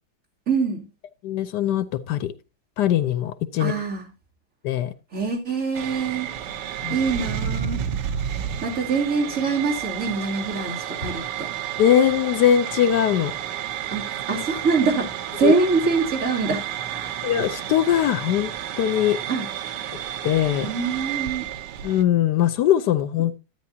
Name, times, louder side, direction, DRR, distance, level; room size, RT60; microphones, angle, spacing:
voice 1, 0.5-0.8 3.6-4.1 5.1-6.3 6.9-7.8 8.6-11.5 13.9-17.2 19.3-19.4 20.6-21.5, right 4 dB, 50° right, 3.3 m, -24 dB
voice 2, 1.2-2.3 2.8-3.7 4.6-4.9 6.8-7.0 11.8-13.3 15.4-15.5 17.2-18.5 18.8-19.2 20.2-20.7 21.8-23.4, left 10 dB, 75° left, 1.3 m, -21 dB
sound 1, 5.7-22.0, right 10 dB, 80° right, 1.4 m, -31 dB
12.5 x 9.3 x 2.7 m
omnidirectional pair, 1.8 m